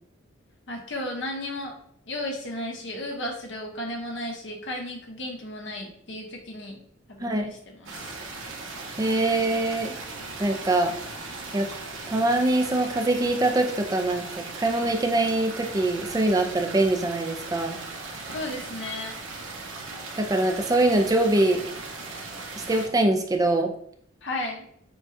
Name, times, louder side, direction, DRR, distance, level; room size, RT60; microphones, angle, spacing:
voice 1, 0.7-1.7 2.1-6.8 7.1-8.0 18.3-19.2 24.2-24.6, left 1 dB, 60° left, 0 dB, 1.1 m, -34 dB
voice 2, 7.2-7.5 9.0-10.0 10.4-10.9 11.5-11.7 12.1-14.2 14.5-17.8 20.2-21.6 22.5-23.7, right 2 dB, 20° right, 3 dB, 0.4 m, -23 dB
sound 1, 7.8-22.9, right 3 dB, 85° right, 1.0 m, -38 dB
6.8 x 2.3 x 2.7 m, 0.66 s
head